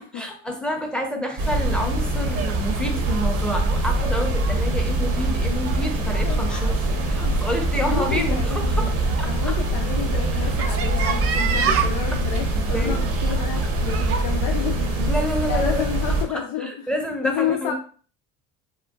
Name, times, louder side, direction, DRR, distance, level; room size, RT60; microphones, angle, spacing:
voice 1, 0.1-6.8 7.1-9.5 10.3-10.5 11.7-11.9 12.6-13.0 15.0-15.8 16.3-17.7, equal, 5° left, 3 dB, 0.7 m, -29 dB
sound 1, 1.4-16.2, right 2 dB, 60° right, 0.8 m, -23 dB
sound 2, 2.4-14.2, right 7 dB, 45° right, 0.4 m, -32 dB
voice 2, 6.0-7.4 7.8-15.0 15.5-16.9 17.2-17.7, left 9 dB, 75° left, 2 dB, 0.5 m, -31 dB
3.6 x 2.2 x 2.4 m, 0.42 s
supercardioid pair, 75°, 34 cm